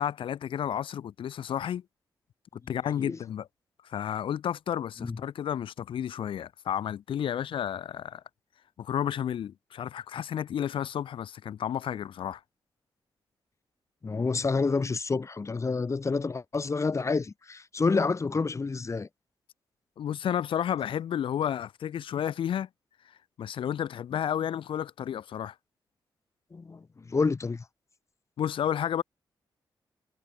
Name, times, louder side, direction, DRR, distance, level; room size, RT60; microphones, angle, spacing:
voice 1, 0.0-1.8 2.5-3.5 3.8-8.2 8.8-12.4 20.0-22.7 23.4-25.5 28.4-29.0, left 9 dB, 85° left, 3.0 m, -31 dB
voice 2, 14.0-19.1 26.5-27.6, left 4 dB, 35° left, 1.7 m, -28 dB
cardioid pair, 85°, 9 cm